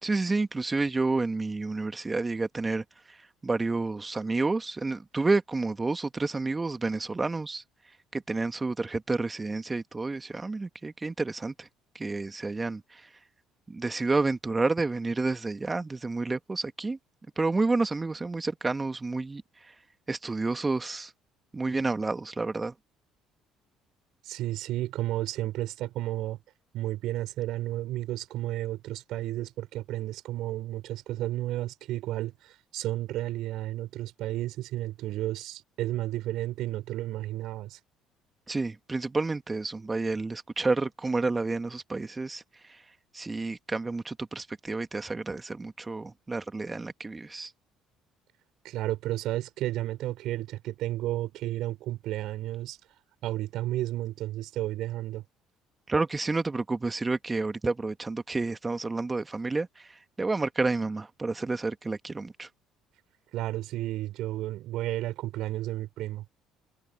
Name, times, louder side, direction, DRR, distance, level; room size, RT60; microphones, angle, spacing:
voice 1, 0.0-3.2 3.4-7.6 8.1-11.7 12.0-13.1 13.7-17.0 17.4-19.7 20.1-21.1 21.5-22.7 38.5-42.4 42.7-42.8 43.1-47.5 55.9-62.5, right 3 dB, 20° right, 1.9 m, -30 dB
voice 2, 24.2-26.4 26.7-37.8 48.6-52.8 53.2-55.2 63.3-66.2, right 15 dB, 65° right, 4.9 m, -32 dB
hypercardioid pair, 60°, 0 cm